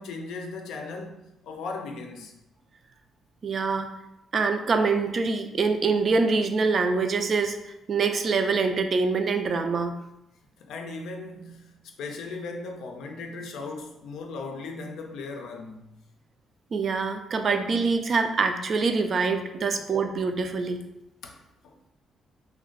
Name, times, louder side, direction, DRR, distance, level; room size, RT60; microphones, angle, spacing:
voice 1, 0.0-2.3 10.6-15.9 19.6-19.8 21.2-21.4 21.6-21.8, left 3 dB, 80° left, 0.4 m, -37 dB
voice 2, 3.4-3.9 4.3-7.6 7.9-9.9 16.7-20.8, right 4 dB, 50° right, 0.3 m, -25 dB
2.5 x 2.2 x 3.6 m
cardioid pair, 90°, 0 cm